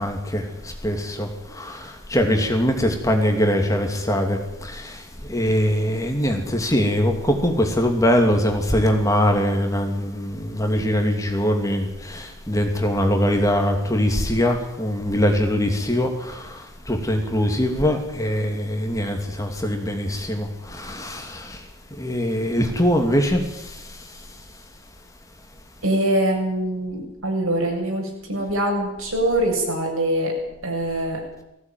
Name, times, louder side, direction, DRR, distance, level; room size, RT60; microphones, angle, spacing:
voice 1, 0.0-21.6 22.0-24.0, equal, 15° left, 3 dB, 2.7 m, -22 dB
voice 2, 25.8-30.3 30.6-31.2, right 1 dB, 80° right, 1 dB, 7.3 m, -23 dB
19.0 x 16.0 x 9.3 m, 0.90 s
head